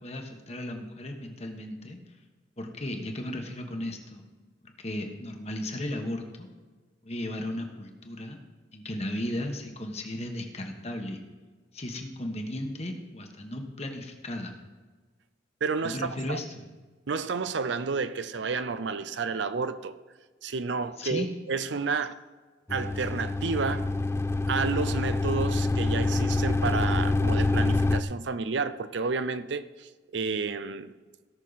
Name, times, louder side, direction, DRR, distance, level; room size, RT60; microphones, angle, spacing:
voice 1, 0.0-2.0 2.6-4.3 4.6-6.5 7.0-8.4 8.7-11.2 11.7-14.5 15.8-16.5 21.0-21.3, left 1 dB, 35° left, 1.4 m, -35 dB
voice 2, 15.6-16.4 17.1-20.0 20.4-22.1 22.7-23.9 24.5-30.9, right 4 dB, 70° right, 0.5 m, -31 dB
sound 1, 22.7-28.0, left 2 dB, 15° left, 0.3 m, -26 dB
17.0 x 6.4 x 4.1 m
head